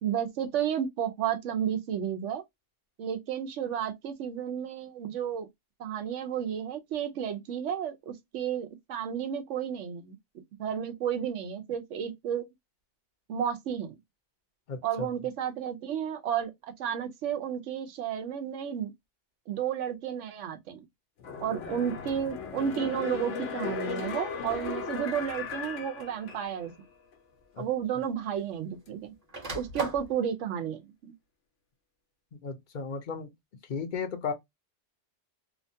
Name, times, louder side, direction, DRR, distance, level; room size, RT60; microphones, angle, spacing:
voice 1, 0.0-2.4 3.0-5.5 5.8-10.2 10.6-12.4 13.3-14.0 14.8-16.5 16.8-18.9 19.5-20.8 21.4-26.7 27.6-29.1 29.5-31.1, right 9 dB, 85° right, 1.0 m, -32 dB
voice 2, 14.7-15.1 27.6-27.7 32.3-33.3 33.7-34.3, left 5 dB, 50° left, 0.6 m, -35 dB
sound 1, 21.2-26.8 27.1-27.2, left 6 dB, 85° left, 1.1 m, -37 dB
sound 2, 24.5-24.8 25.8-25.9 27.3-27.4 27.7-28.8 29.1-30.1, right 3 dB, 35° right, 1.0 m, -38 dB
2.8 x 2.2 x 2.6 m
omnidirectional pair, 1.2 m